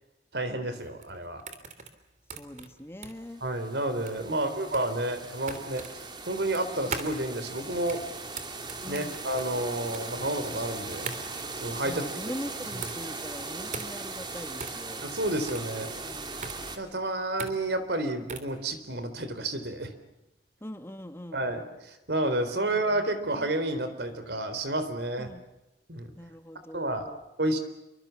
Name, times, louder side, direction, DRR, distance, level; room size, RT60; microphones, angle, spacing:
voice 1, 0.3-1.4 3.4-8.0 8.9-11.1 11.6-12.0 12.8-12.9 15.0-15.9 16.8-19.9 21.3-25.3 25.9-26.1 26.7-27.1 27.4-27.6, right 1 dB, 70° right, 10 dB, 4.1 m, -30 dB
sound 1, 0.8-18.6, right 4 dB, 45° right, 3.2 m, -41 dB
voice 2, 2.3-3.4 4.3-4.9 8.8-9.2 11.8-15.0 16.0-16.5 20.6-21.4 22.5-22.8 25.2-25.4 26.2-27.2, left 1 dB, 15° left, 8 dB, 1.5 m, -42 dB
sound 2, 3.2-16.8, right 3 dB, 25° right, 3.0 m, -39 dB
28.0 x 24.5 x 7.2 m, 0.94 s
head